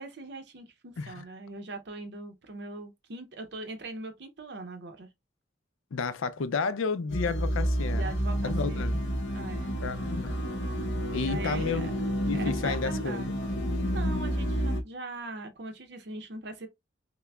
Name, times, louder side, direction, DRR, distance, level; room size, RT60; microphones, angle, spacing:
voice 1, 0.0-5.1 7.9-8.9 9.3-9.7 11.1-11.9 12.3-13.4 13.9-16.7, right 2 dB, 55° right, 0.6 m, -41 dB
voice 2, 5.9-8.1 8.4-9.0 9.8-10.3 11.1-11.9 12.3-13.4, left 4 dB, 85° left, 0.5 m, -31 dB
sound 1, 7.1-14.8, equal, 60° left, 0.8 m, -30 dB
5.8 x 2.1 x 2.3 m
head